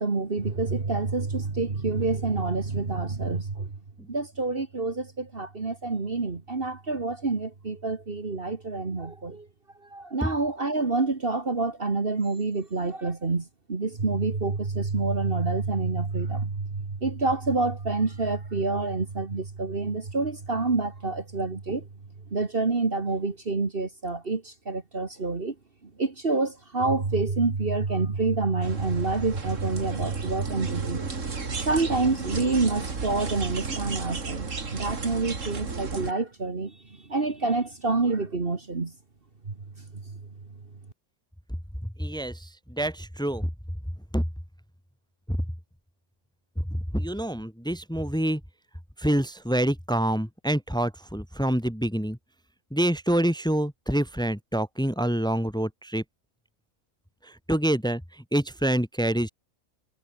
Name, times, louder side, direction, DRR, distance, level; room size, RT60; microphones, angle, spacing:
voice 1, 0.0-3.7 4.1-9.5 9.9-21.9 22.3-25.5 26.0-31.1 31.7-36.8 37.1-38.9 39.5-39.6, right 3 dB, 40° right, 2.0 m, -27 dB
sound 1, 28.6-36.1, right 4 dB, 55° right, 2.8 m, -33 dB
voice 2, 41.8-43.5 44.1-44.2 45.3-45.4 46.6-48.4 49.0-52.2 52.7-56.0 57.2-59.3, right 1 dB, 5° left, 2.0 m, -27 dB
omnidirectional pair, 1.6 m